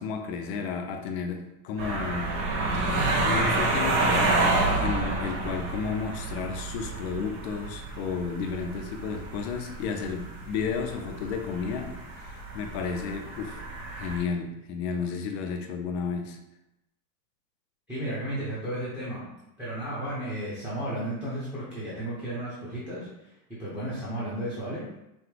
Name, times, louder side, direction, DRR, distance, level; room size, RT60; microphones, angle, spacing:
voice 1, 0.0-2.4 2.9-13.6 13.9-16.4, left 5 dB, 45° left, 4 dB, 0.5 m, -32 dB
sound 1, 1.8-14.2, right 2 dB, 25° right, 0.4 m, -29 dB
voice 2, 17.9-19.3 19.6-24.8, right 1 dB, 5° right, -9 dB, 0.8 m, -34 dB
5.9 x 2.2 x 3.3 m, 0.87 s
supercardioid pair, 160°, 49 cm